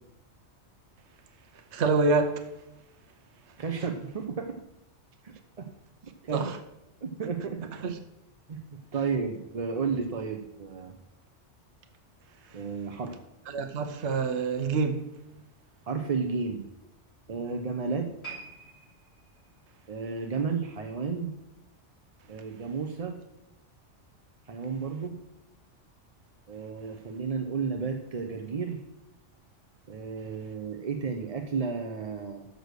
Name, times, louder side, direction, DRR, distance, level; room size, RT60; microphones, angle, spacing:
voice 1, 1.7-2.4 6.3-6.6 7.8-7.9 13.5-15.0, right 4 dB, 70° right, 1.1 m, -26 dB
voice 2, 3.6-4.6 5.2-5.7 6.2-6.4 7.0-7.6 8.5-8.6 8.9-11.0 12.5-13.1 15.9-16.6 17.3-18.1 19.9-21.3 22.3-23.2 24.5-25.2 26.5-28.8 29.9-32.5, right 5 dB, 40° right, 0.6 m, -32 dB
sound 1, 18.2-21.5 21.8-22.1 22.8-22.9, right 5 dB, 60° left, 3.9 m, -48 dB
6.7 x 6.3 x 6.6 m
omnidirectional pair, 1.2 m